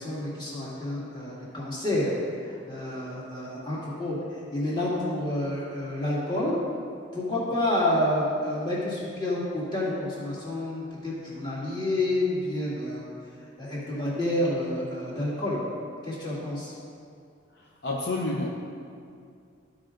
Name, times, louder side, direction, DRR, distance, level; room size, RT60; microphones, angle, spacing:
voice 1, 0.0-6.6 7.1-13.1 13.6-15.6 16.0-16.7, left 1 dB, 25° left, -7 dB, 2.2 m, -29 dB
voice 2, 17.6-18.5, left 2 dB, 60° left, -1 dB, 0.7 m, -30 dB
14.0 x 4.9 x 3.7 m, 2.3 s
head